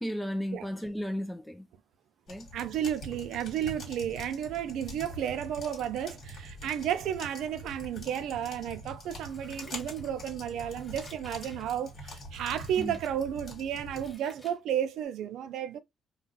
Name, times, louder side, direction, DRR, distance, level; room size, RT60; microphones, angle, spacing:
voice 1, 0.0-1.7 2.3-2.5 12.8-12.9, equal, 5° left, 0.4 m, -34 dB
sound 1, 2.3-14.1, equal, 55° left, 1.4 m, -44 dB
voice 2, 2.5-15.8, right 10 dB, 80° right, 0.4 m, -33 dB
Scissors, 9.2-10.3 10.7-11.7 12.3-13.1 13.6-14.6 15.0-15.1, left 2 dB, 20° left, 1.1 m, -56 dB
2.4 x 2.3 x 3.8 m
cardioid pair, 90°, 0 cm